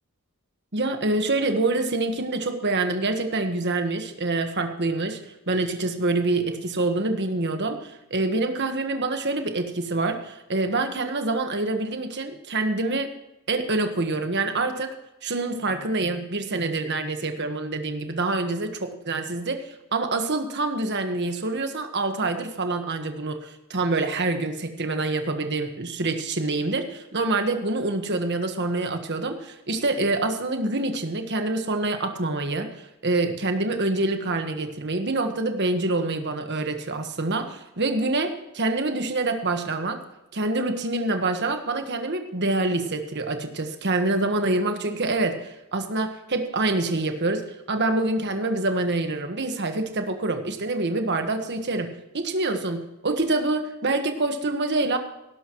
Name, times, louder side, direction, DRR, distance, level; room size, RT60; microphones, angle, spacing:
voice 1, 0.7-5.2 5.5-13.1 13.5-14.9 15.2-19.6 19.9-32.7 33.0-40.0 40.3-51.9 52.1-55.0, right 2 dB, 50° right, 6 dB, 1.4 m, -26 dB
18.0 x 12.0 x 3.1 m, 0.92 s
head